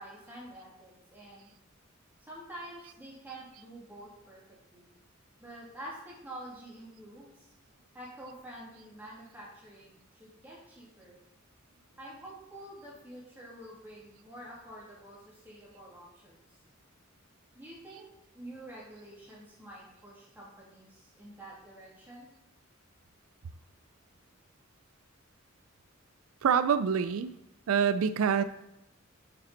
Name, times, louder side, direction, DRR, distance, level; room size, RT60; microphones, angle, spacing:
voice 1, 0.0-1.5 2.2-4.4 4.7-4.9 5.4-7.3 7.9-11.2 12.0-16.6 17.5-18.0 18.3-22.3, right 1 dB, 10° right, -6 dB, 2.6 m, -48 dB
voice 2, 26.4-27.3 27.7-28.4, right 7 dB, 90° right, 13 dB, 0.4 m, -26 dB
8.5 x 5.3 x 4.1 m, 0.87 s
head